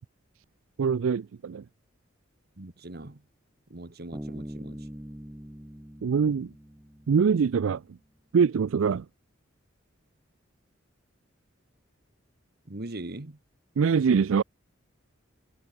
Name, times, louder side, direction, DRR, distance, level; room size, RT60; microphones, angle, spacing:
voice 1, 0.8-1.6 6.0-6.5 7.1-7.8 8.3-9.0 13.8-14.4, right 6 dB, 80° right, 0.4 m, -23 dB
voice 2, 2.6-3.2 3.7-4.9 12.7-13.4, right 2 dB, 50° right, 1.4 m, -41 dB
Bass guitar, 4.1-7.6, equal, 10° right, 1.1 m, -42 dB
head